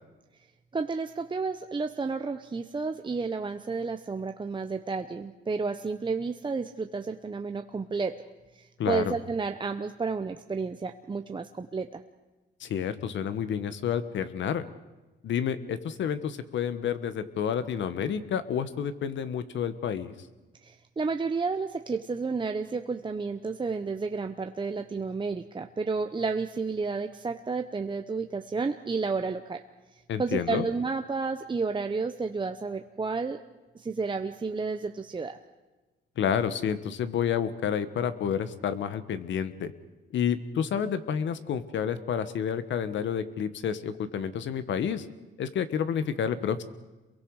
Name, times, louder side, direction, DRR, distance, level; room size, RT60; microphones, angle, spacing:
voice 1, 0.7-8.2 8.5-12.0 20.6-29.6 30.2-33.4 33.7-35.4, right 4 dB, 25° right, 6 dB, 0.9 m, -31 dB
voice 2, 8.8-9.1 12.6-14.6 15.2-20.1 30.1-30.7 36.2-39.7 40.1-45.1 45.4-46.6, left 8 dB, 70° left, 12 dB, 1.3 m, -29 dB
28.0 x 22.5 x 4.9 m, 1.1 s
cardioid pair, 90°, 20 cm